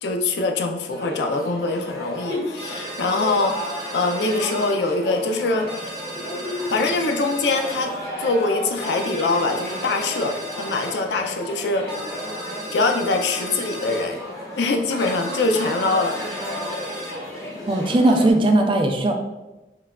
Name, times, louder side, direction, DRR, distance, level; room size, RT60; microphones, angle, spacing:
voice 1, 0.0-5.7 6.7-7.9 8.2-11.9 12.7-14.2 14.6-16.2, left 3 dB, 75° left, 4 dB, 0.4 m, -23 dB
sound 1, 0.9-18.3, left 1 dB, 20° left, 0.9 m, -33 dB
sound 2, 2.6-4.8 5.7-7.9 8.8-11.0 11.9-14.1 15.0-17.2, right 1 dB, 80° right, 1.4 m, -36 dB
voice 2, 17.7-19.1, right 1 dB, 30° right, 4 dB, 0.3 m, -18 dB
5.5 x 2.3 x 2.2 m, 1.1 s
head